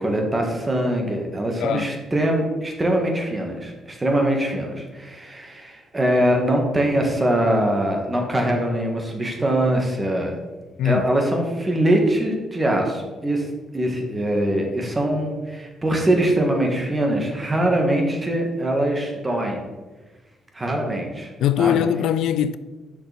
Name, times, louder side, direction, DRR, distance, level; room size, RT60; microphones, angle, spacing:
voice 1, 0.0-10.4 10.8-13.5 13.7-19.6 20.5-21.3 21.6-21.8, right 1 dB, 20° right, 1.9 m, -22 dB
voice 2, 21.4-22.6, left 10 dB, 80° left, 0.3 m, -21 dB
6.8 x 5.9 x 5.2 m
cardioid pair, 90°, 0 cm